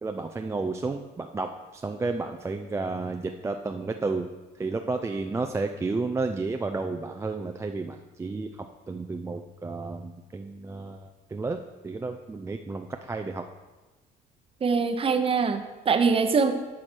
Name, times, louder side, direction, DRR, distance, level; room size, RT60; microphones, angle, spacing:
voice 1, 0.0-4.3 4.6-11.6 11.8-13.4, right 3 dB, 15° right, 5 dB, 0.4 m, -32 dB
voice 2, 14.6-16.5, right 5 dB, 35° right, 8 dB, 0.8 m, -23 dB
11.5 x 4.8 x 4.5 m, 1.2 s
cardioid pair, 110°, 17 cm